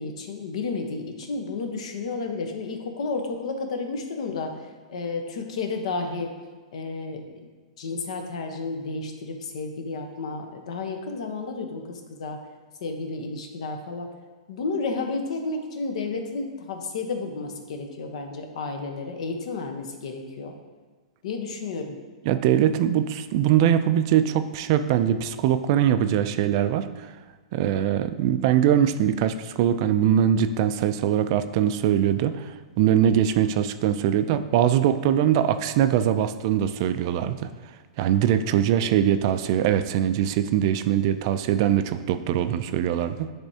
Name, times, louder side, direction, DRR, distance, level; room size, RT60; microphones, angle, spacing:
voice 1, 0.0-6.3 6.7-7.5 7.8-12.4 12.8-14.1 14.5-20.5 21.2-21.9, left 3 dB, 65° left, 4 dB, 0.9 m, -32 dB
voice 2, 22.3-26.9 27.5-32.5 32.8-37.5 38.0-43.3, right 10 dB, 45° right, 11 dB, 0.3 m, -22 dB
10.0 x 3.4 x 2.8 m, 1.4 s
hypercardioid pair, 145°, 4 cm